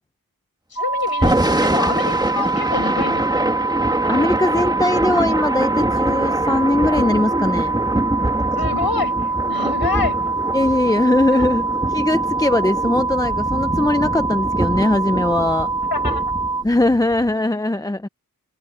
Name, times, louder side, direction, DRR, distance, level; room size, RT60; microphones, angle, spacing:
voice 1, 0.7-3.6 8.5-10.2 11.3-11.5 15.9-16.3, left 5 dB, 90° left, 7.1 m, -27 dB
sound 1, 0.8-16.6, right 3 dB, 45° left, 2.1 m, -24 dB
Thunder / Rain, 1.1-17.3, right 1 dB, 10° right, 1.8 m, -24 dB
voice 2, 4.1-7.8 10.5-15.7 16.6-18.1, left 2 dB, 10° left, 0.7 m, -20 dB
cardioid pair, 55°, 36 cm